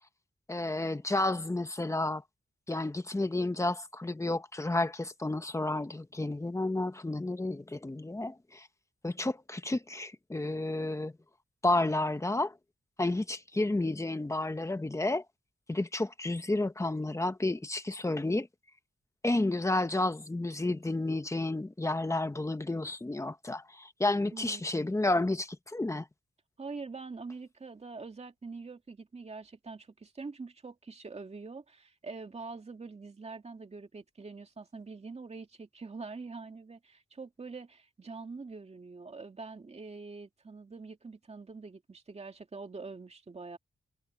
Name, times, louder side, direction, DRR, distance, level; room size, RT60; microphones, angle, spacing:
voice 1, 0.5-2.2 2.7-8.7 9.0-11.1 11.6-12.6 13.0-15.2 15.7-18.5 19.2-26.1, left 2 dB, 15° left, 1.3 m, -31 dB
voice 2, 24.3-24.6 26.6-43.6, right 4 dB, 35° right, 2.3 m, -44 dB
wide cardioid pair, 130°, 19 cm